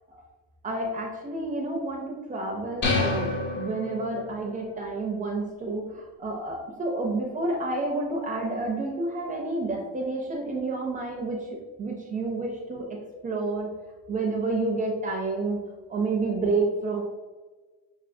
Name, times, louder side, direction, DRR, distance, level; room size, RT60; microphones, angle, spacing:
voice 1, 0.6-11.5 11.8-12.9 13.2-13.7 14.1-15.6 15.9-17.0, right 3 dB, 25° right, 0 dB, 0.4 m, -29 dB
sound 1, 2.8-4.4, left 3 dB, 35° left, 0.6 m, -28 dB
5.7 x 2.7 x 2.6 m, 1.3 s
cardioid pair, 170°, 34 cm